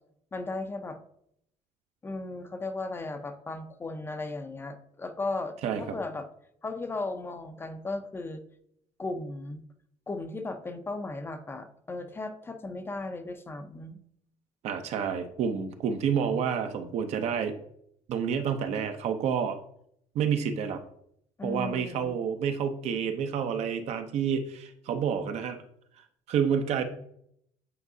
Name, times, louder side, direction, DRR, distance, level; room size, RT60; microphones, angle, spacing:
voice 1, 0.3-1.0 2.0-6.3 6.6-8.4 9.0-9.6 10.1-14.0 21.4-22.1, left 2 dB, 15° left, 7 dB, 0.5 m, -36 dB
voice 2, 14.6-17.5 18.1-19.6 20.1-20.8 21.4-25.6 26.3-26.8, right 7 dB, 55° right, 8 dB, 0.7 m, -29 dB
8.5 x 4.5 x 2.7 m, 0.70 s
cardioid pair, 155°, 13 cm